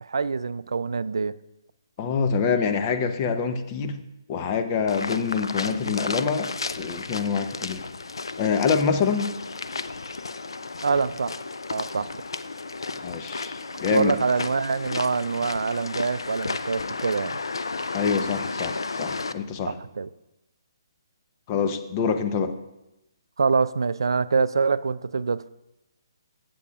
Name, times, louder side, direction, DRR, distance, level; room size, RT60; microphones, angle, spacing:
voice 1, 0.0-1.3 10.8-11.4 11.7-12.1 13.9-17.4 19.7-20.1 23.4-25.5, right 5 dB, 75° right, 17 dB, 0.3 m, -25 dB
voice 2, 2.0-4.0 4.3-7.8 8.4-9.4 13.0-14.2 17.9-19.8 21.5-22.5, left 6 dB, 30° left, 7 dB, 0.7 m, -26 dB
sound 1, 4.9-19.3, left 3 dB, 80° left, 0.4 m, -33 dB
15.0 x 7.7 x 2.4 m, 0.93 s
figure-of-eight pair, 140°, 2 cm